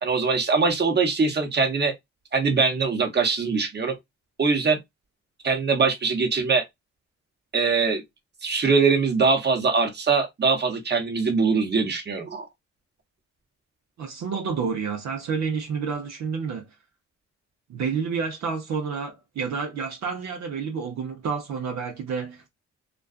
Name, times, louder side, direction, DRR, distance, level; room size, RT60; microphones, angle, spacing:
voice 1, 0.0-1.9 2.3-3.9 4.4-4.8 5.4-6.6 7.5-8.0 8.4-12.5, right 4 dB, 35° right, 1.0 m, -22 dB
voice 2, 14.0-16.7 17.7-22.5, right 5 dB, 65° right, 0.7 m, -29 dB
2.4 x 2.3 x 2.3 m
cardioid pair, 70°, 30 cm